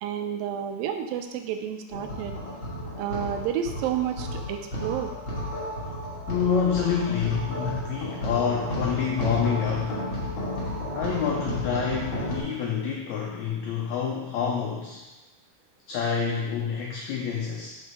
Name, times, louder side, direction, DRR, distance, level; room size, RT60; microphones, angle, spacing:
voice 1, 0.0-2.4 3.0-5.1, right 9 dB, 90° right, 6 dB, 2.3 m, -30 dB
sound 1, 1.9-12.4, equal, 40° left, 1.2 m, -33 dB
voice 2, 6.3-10.0 10.9-15.0 15.9-17.7, left 7 dB, 85° left, -1 dB, 1.6 m, -27 dB
5.8 x 4.2 x 4.6 m, 1.1 s
omnidirectional pair, 4.0 m